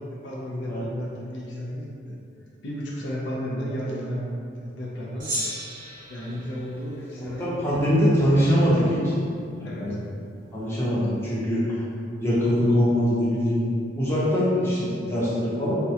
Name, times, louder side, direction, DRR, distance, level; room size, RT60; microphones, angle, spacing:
voice 1, 0.0-2.2 2.6-5.3 6.1-7.9 9.6-9.9, equal, 85° left, -3 dB, 0.5 m, -33 dB
Gong, 5.2-7.8, equal, 50° right, 0.8 m, -35 dB
voice 2, 7.4-9.1 9.6-10.0 10.5-11.6 12.2-13.7 13.9-15.8, equal, 15° left, -9 dB, 0.7 m, -22 dB
3.5 x 2.2 x 2.8 m, 2.4 s
head